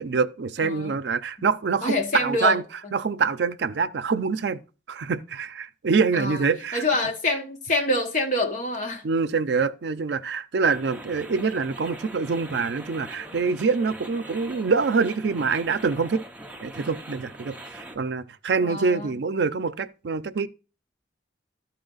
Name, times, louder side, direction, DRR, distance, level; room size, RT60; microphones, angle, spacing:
voice 1, 0.0-2.6 2.9-4.6 4.9-6.8 9.0-16.3 16.6-20.5, right 5 dB, 70° right, 0.5 m, -25 dB
voice 2, 0.6-1.0 1.8-2.6 6.1-6.4 6.7-9.0 18.6-19.2, left 2 dB, 45° left, 1.2 m, -26 dB
sound 1, 10.6-18.0, right 1 dB, 10° right, 0.6 m, -42 dB
12.5 x 4.3 x 3.9 m
head